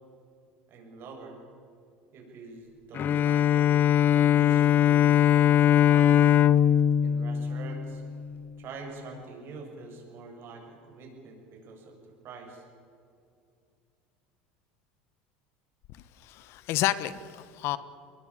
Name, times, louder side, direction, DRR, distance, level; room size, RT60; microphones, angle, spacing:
voice 1, 0.7-1.4 2.1-3.7 4.1-6.3 7.0-8.0 8.6-12.0 12.2-12.7, right 4 dB, 50° right, 2 dB, 7.7 m, -45 dB
Bowed string instrument, 2.9-8.4, left 10 dB, 40° left, 0.7 m, -21 dB
voice 2, 15.9-17.8, left 14 dB, 60° left, 16 dB, 1.1 m, -30 dB
23.0 x 20.5 x 8.6 m, 2.4 s
supercardioid pair, 95°, 5 cm